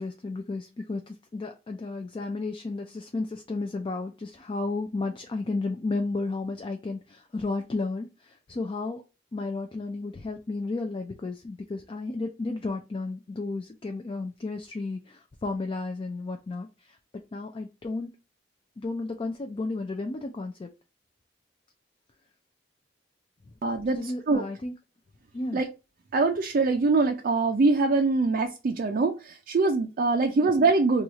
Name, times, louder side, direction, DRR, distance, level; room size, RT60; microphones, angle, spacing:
voice 1, 0.0-9.0 9.3-17.0 17.3-18.1 18.8-20.7 23.9-24.7 25.3-25.6 30.4-30.5, left 3 dB, 30° left, 0.3 m, -33 dB
voice 2, 23.6-24.4 25.5-25.7 26.1-31.0, right 3 dB, 50° right, 0.4 m, -23 dB
3.0 x 2.3 x 3.9 m
head